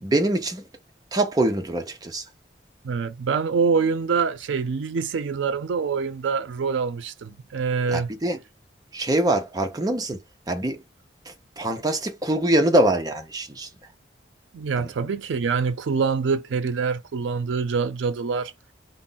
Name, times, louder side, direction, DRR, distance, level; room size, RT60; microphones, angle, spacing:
voice 1, 0.0-0.6 1.1-2.2 7.9-8.4 8.9-10.2 10.5-10.8 11.6-13.7, right 1 dB, 20° right, 0.5 m, -23 dB
voice 2, 2.8-8.1 14.5-18.5, right 5 dB, 85° right, 0.4 m, -25 dB
2.5 x 2.0 x 3.7 m
head